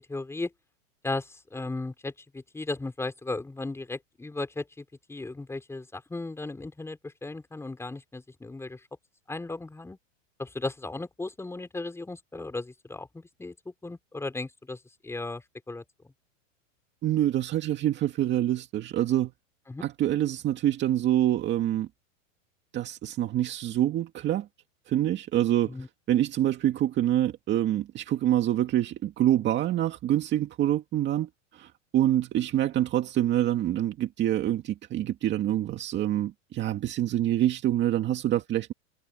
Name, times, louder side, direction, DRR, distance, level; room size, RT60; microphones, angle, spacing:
voice 1, 0.1-0.5 1.0-8.8 9.3-10.0 10.4-13.5 13.8-15.8 19.7-19.8 25.6-25.9, left 2 dB, 5° left, 5.0 m, -36 dB
voice 2, 17.0-19.3 19.8-21.9 22.7-24.5 24.9-25.7 26.1-38.7, right 12 dB, 30° right, 2.1 m, -26 dB
supercardioid pair, 140°, 39 cm